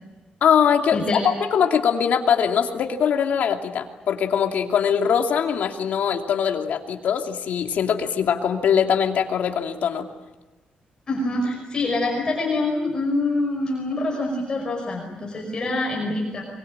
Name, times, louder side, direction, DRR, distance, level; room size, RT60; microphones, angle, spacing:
voice 1, 0.4-10.1, left 7 dB, 65° left, 4 dB, 2.7 m, -22 dB
voice 2, 0.9-1.2 11.1-16.4, left 2 dB, 30° left, -1 dB, 5.6 m, -25 dB
23.5 x 23.5 x 8.9 m, 1.1 s
wide cardioid pair, 165°, 3 cm